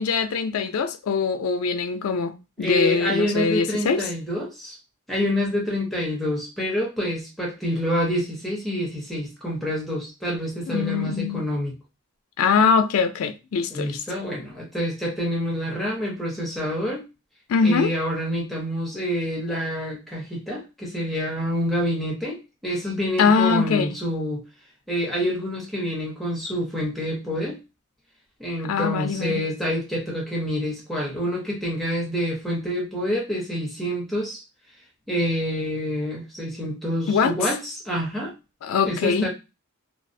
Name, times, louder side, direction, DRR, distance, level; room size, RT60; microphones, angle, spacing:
voice 1, 0.0-4.1 10.7-11.4 12.4-14.0 17.5-17.9 23.2-23.9 28.6-29.4 37.1-37.3 38.6-39.3, left 5 dB, 75° left, 0.4 m, -22 dB
voice 2, 2.6-4.8 5.1-11.7 13.7-17.0 17.6-24.4 24.9-27.6 28.4-34.4 35.1-38.3 38.8-39.3, equal, ahead, 0.7 m, -27 dB
2.4 x 2.0 x 2.5 m
head